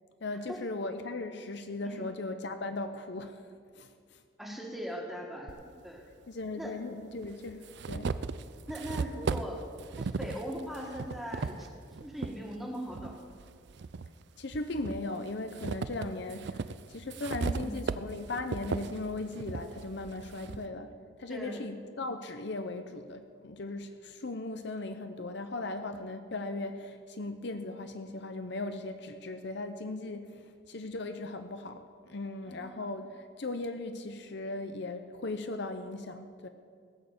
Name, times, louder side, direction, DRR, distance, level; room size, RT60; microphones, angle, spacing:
voice 1, 0.2-3.4 3.7-4.2 6.3-8.1 14.4-16.6 16.9-20.9 21.2-30.4 30.7-36.5, left 2 dB, 60° left, 8 dB, 0.7 m, -38 dB
voice 2, 4.4-5.5 5.8-6.0 6.6-6.7 8.7-9.6 10.0-11.7 12.0-13.2 17.4-17.7 20.3-20.5 21.3-21.6 32.5-32.9, equal, ahead, -1 dB, 1.9 m, -40 dB
sound 1, 5.5-5.6 6.6-6.7 7.2-12.4 12.9-14.1 14.5-20.7, right 4 dB, 55° right, 0.4 m, -36 dB
17.5 x 6.7 x 8.4 m, 2.2 s
head